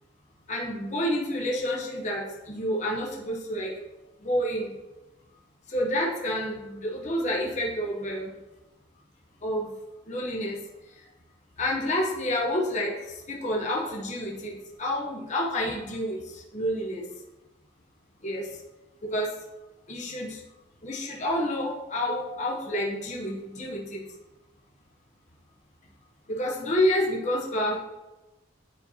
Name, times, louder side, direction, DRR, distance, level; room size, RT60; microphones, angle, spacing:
voice 1, 0.5-3.8 4.2-4.7 5.7-8.3 9.4-9.7 10.1-11.0 11.6-17.1 18.2-18.6 19.0-19.3 19.9-20.4 20.8-24.1 26.3-27.8, left 1 dB, 40° left, -2 dB, 0.9 m, -29 dB
9.4 x 4.4 x 2.8 m, 1.1 s
head